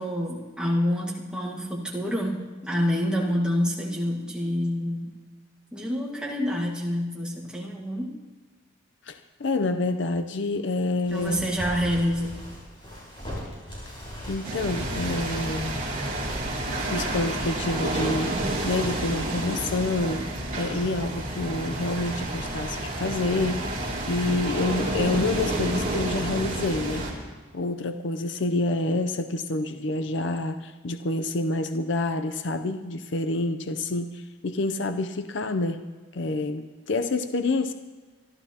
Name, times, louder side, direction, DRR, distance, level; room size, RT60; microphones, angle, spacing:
voice 1, 0.0-5.1 5.7-8.1 11.1-12.4, equal, 5° right, -3 dB, 1.6 m, -27 dB
voice 2, 9.1-11.5 14.3-15.8 16.9-18.3 18.6-20.2 20.6-23.7 24.1-27.1 27.5-35.8 36.1-37.7, left 2 dB, 60° left, 8 dB, 0.6 m, -28 dB
sound 1, 11.0-19.1, equal, 25° left, 5.4 m, -40 dB
sound 2, 14.4-27.1, right 1 dB, 40° right, 2.8 m, -30 dB
26.0 x 12.0 x 2.9 m, 1.3 s
head